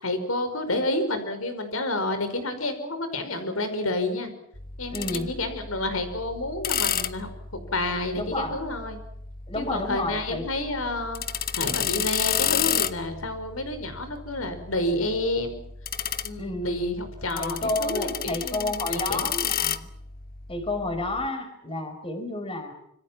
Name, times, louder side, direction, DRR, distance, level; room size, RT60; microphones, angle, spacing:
voice 1, 0.0-4.3 4.8-7.3 7.7-9.0 9.5-11.2 11.5-15.6 16.2-19.3, left 2 dB, 85° left, 9 dB, 5.3 m, -29 dB
sound 1, 4.5-21.3, left 9 dB, 45° left, 1.2 m, -32 dB
voice 2, 4.9-5.4 8.1-8.6 9.5-10.4 16.4-16.8 17.3-19.9 20.5-22.7, left 1 dB, 25° left, 8 dB, 4.8 m, -30 dB
27.0 x 25.0 x 5.9 m, 0.73 s
head